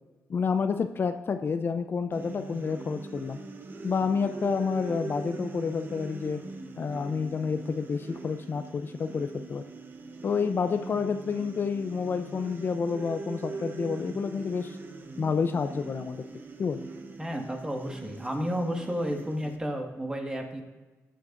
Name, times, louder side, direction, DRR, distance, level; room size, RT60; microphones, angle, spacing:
voice 1, 0.3-3.4 3.8-6.4 6.8-9.6 10.2-14.8 15.2-16.2 16.6-16.9, left 5 dB, 45° left, 9 dB, 0.5 m, -29 dB
sound 1, 2.1-19.6, right 3 dB, 40° right, 1.0 m, -42 dB
voice 2, 17.2-20.6, equal, 15° right, 2 dB, 1.8 m, -32 dB
15.0 x 10.0 x 2.6 m, 1.2 s
cardioid pair, 95°, 5 cm